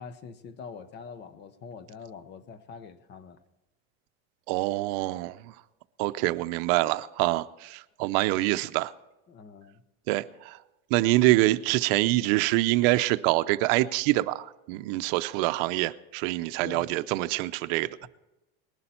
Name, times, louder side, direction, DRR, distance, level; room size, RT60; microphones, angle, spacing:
voice 1, 0.0-3.4 9.3-9.8 16.6-16.9 18.0-18.1, left 6 dB, 35° left, 0.9 m, -44 dB
voice 2, 4.5-5.5 6.0-8.9 10.1-10.6 10.9-17.9, right 18 dB, 65° right, 0.6 m, -25 dB
19.5 x 11.0 x 4.3 m
cardioid pair, 145°, 31 cm